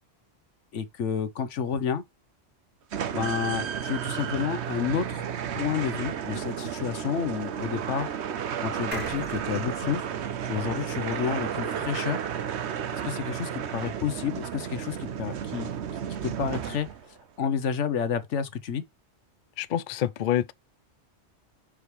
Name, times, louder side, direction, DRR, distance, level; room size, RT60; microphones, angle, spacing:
voice 1, 0.7-2.0 3.1-5.2 5.5-8.1 8.6-10.0 10.5-12.2 12.9-15.7 16.2-16.9 17.4-18.8, left 7 dB, 85° left, 1.3 m, -30 dB
sound 1, 2.9-17.2, right 8 dB, 70° right, 1.1 m, -33 dB
sound 2, 8.9-12.4 12.8-12.9 13.1-13.2, right 1 dB, 10° right, 2.1 m, -44 dB
voice 2, 19.6-20.5, left 11 dB, 55° left, 0.6 m, -27 dB
6.2 x 5.1 x 3.2 m
omnidirectional pair, 1.2 m